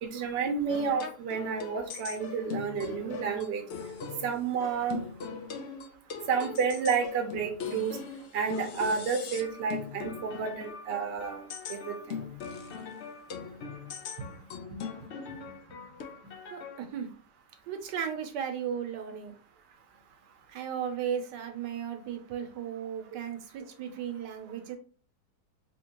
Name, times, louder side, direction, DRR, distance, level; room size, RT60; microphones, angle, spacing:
voice 1, 0.0-3.6 4.2-5.0 6.3-8.0 8.3-11.4 11.7-12.2, right 6 dB, 50° right, 3 dB, 0.8 m, -30 dB
sound 1, 0.7-16.8, left 6 dB, 85° left, 0.6 m, -40 dB
voice 2, 14.2-15.8 16.2-17.1 17.7-19.3 20.5-24.8, right 8 dB, 80° right, 5 dB, 1.3 m, -36 dB
4.3 x 2.8 x 2.9 m, 0.39 s
omnidirectional pair, 1.8 m